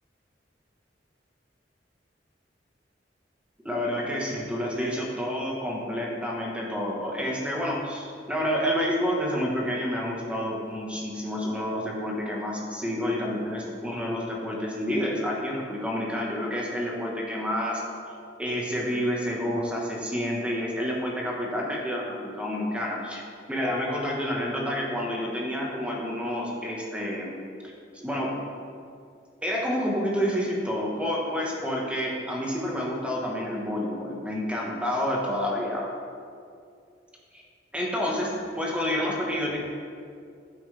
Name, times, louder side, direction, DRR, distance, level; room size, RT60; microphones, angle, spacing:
voice 1, 3.6-17.8 18.4-23.2 23.5-27.3 27.9-28.3 29.4-35.9 37.3-37.4 37.7-39.6, equal, 5° right, -3 dB, 1.3 m, -29 dB
9.2 x 8.7 x 3.4 m, 2.3 s
head